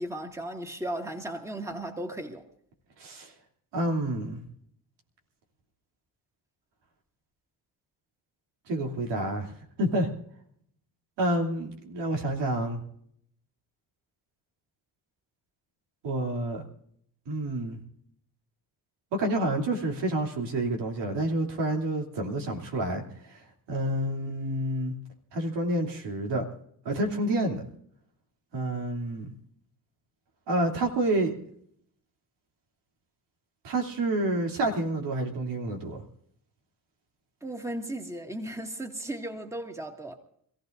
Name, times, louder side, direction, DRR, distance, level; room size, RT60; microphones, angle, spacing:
voice 1, 0.0-2.4 37.4-40.2, right 1 dB, 5° right, 2.1 m, -36 dB
voice 2, 3.0-3.3 3.7-4.4 8.7-10.1 11.2-12.8 16.0-16.6 17.3-17.8 19.1-24.9 25.3-26.4 26.8-27.7 28.5-29.3 30.5-31.3 33.6-36.0, right 1 dB, 90° right, 3.1 m, -29 dB
26.5 x 15.5 x 2.6 m
cardioid pair, 90°, 41 cm